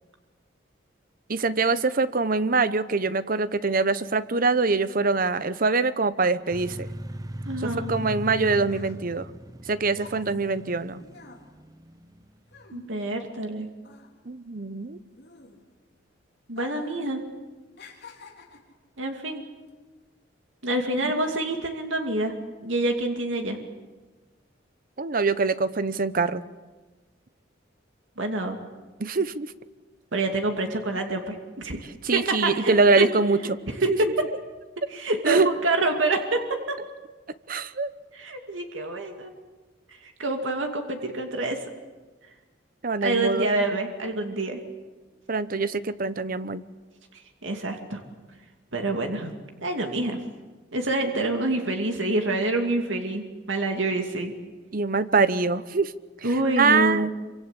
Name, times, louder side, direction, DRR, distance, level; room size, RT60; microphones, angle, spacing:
voice 1, 1.3-6.9 7.6-9.3 9.7-11.0 14.3-15.0 21.0-21.1 25.0-26.4 29.0-29.5 32.0-33.6 33.9-34.0 35.3-35.5 37.5-37.9 42.8-43.5 45.3-46.6 54.7-55.9 56.6-57.1, right 4 dB, 50° right, 14 dB, 0.9 m, -24 dB
sound 1, 6.5-12.7, right 1 dB, 20° right, 0.8 m, -39 dB
voice 2, 7.5-7.9 12.7-13.7 16.5-17.2 19.0-19.4 20.6-22.3 22.6-23.6 28.2-28.6 30.1-31.8 32.1-33.1 33.8-34.1 34.9-36.8 38.1-39.3 39.9-41.6 43.0-44.6 47.4-48.0 48.7-50.2 50.7-54.3 56.2-57.1, right 2 dB, 90° right, 4 dB, 2.5 m, -27 dB
sound 2, 8.7-13.5 13.8-15.9 16.5-17.1 17.3-18.8 19.5-19.7, left 3 dB, 60° left, 3.8 m, -49 dB
27.0 x 25.0 x 8.4 m, 1.3 s
head